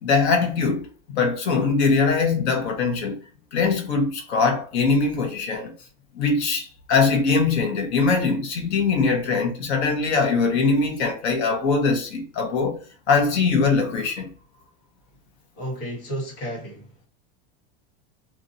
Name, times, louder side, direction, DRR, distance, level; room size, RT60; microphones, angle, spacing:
voice 1, 0.0-3.2 3.5-5.7 6.1-12.8 13.1-14.3, left 4 dB, 90° left, 1.1 m, -22 dB
voice 2, 15.6-17.1, equal, 60° left, 1.6 m, -32 dB
2.7 x 2.7 x 2.6 m
supercardioid pair, 180°, 32 cm